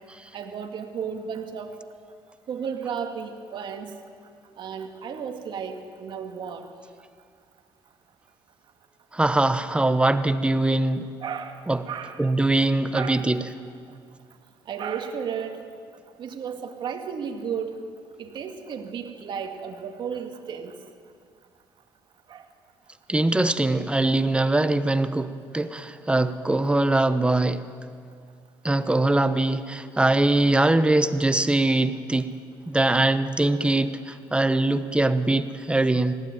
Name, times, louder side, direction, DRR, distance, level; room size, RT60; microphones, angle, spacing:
voice 1, 0.3-1.7 2.5-4.0 4.6-6.7 11.2-12.2 12.9-13.3 14.7-15.6 16.2-17.8 18.2-20.8 22.3-22.4, right 7 dB, 60° right, 5 dB, 2.1 m, -33 dB
voice 2, 9.1-11.1 11.7-11.8 12.2-13.4 23.1-27.6 28.6-32.3 32.7-36.1, right 2 dB, 10° right, 12 dB, 1.0 m, -22 dB
19.0 x 15.0 x 9.2 m, 2.1 s
cardioid pair, 85°, 9 cm